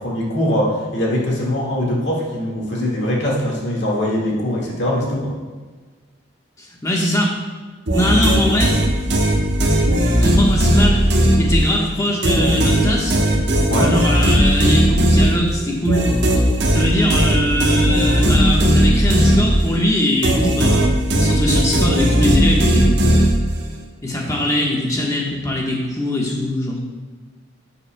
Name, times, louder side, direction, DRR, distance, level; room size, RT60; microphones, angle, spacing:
voice 1, 0.0-5.3 13.7-13.9, left 1 dB, 65° left, -3 dB, 1.9 m, -22 dB
voice 2, 6.6-7.3 7.9-8.8 10.2-11.0 11.4-13.2 13.8-16.0 16.3-16.4 16.7-23.0 24.0-26.8, left 1 dB, 15° left, -2 dB, 1.3 m, -21 dB
sound 1, 7.9-11.8 12.2-19.9 20.2-23.7, equal, 60° right, 1.2 m, -16 dB
11.5 x 6.9 x 2.3 m, 1.4 s
head